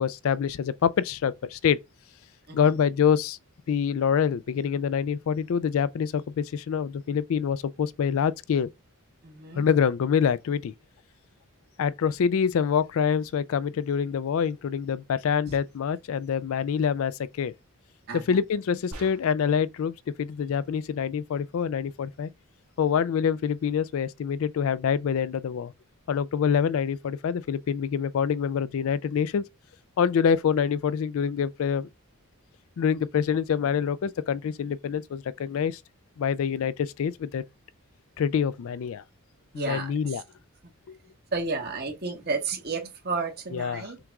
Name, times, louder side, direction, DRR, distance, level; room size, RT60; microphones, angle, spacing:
voice 1, 0.0-1.8 2.5-3.4 3.7-8.7 9.6-10.7 11.8-17.5 18.3-22.3 22.8-25.7 26.1-29.4 30.0-31.9 32.8-35.8 36.2-37.4 38.2-39.0 39.5-40.2 43.5-43.8, left 7 dB, 65° left, 0.3 m, -26 dB
voice 2, 2.5-2.8 9.2-9.7 15.5-15.6 18.1-18.4 39.5-40.2 40.6-40.7 41.3-44.0, right 4 dB, 45° right, 1.4 m, -32 dB
sound 1, 18.9-19.6, right 1 dB, 80° right, 1.4 m, -43 dB
5.9 x 2.4 x 3.5 m
head